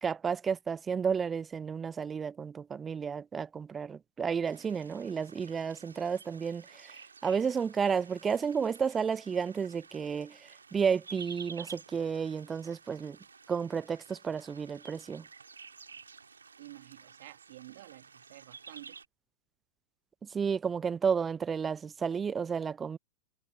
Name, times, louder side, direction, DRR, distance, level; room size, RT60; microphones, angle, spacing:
voice 1, 0.0-13.2 13.5-15.2 20.3-23.0, right 6 dB, 20° right, 0.7 m, -32 dB
sound 1, 4.4-19.0, right 5 dB, 75° right, 2.1 m, -52 dB
voice 2, 16.6-19.0, right 16 dB, 55° right, 2.4 m, -50 dB
figure-of-eight pair, 90°, 0 cm